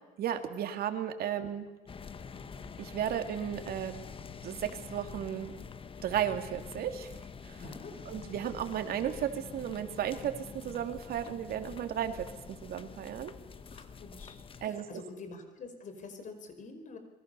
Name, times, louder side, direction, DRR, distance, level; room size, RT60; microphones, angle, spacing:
voice 1, 0.2-1.7 2.8-4.0 4.4-5.5 6.0-7.1 7.4-7.6 8.1-10.3 10.6-13.3 14.6-14.9, right 10 dB, 65° right, 7 dB, 2.7 m, -34 dB
sound 1, 1.9-14.7, left 5 dB, 30° left, 1.3 m, -46 dB
voice 2, 7.6-8.0 13.7-17.0, left 3 dB, 50° left, 7 dB, 5.2 m, -47 dB
27.5 x 22.5 x 7.0 m, 1.2 s
cardioid pair, 110°, 17 cm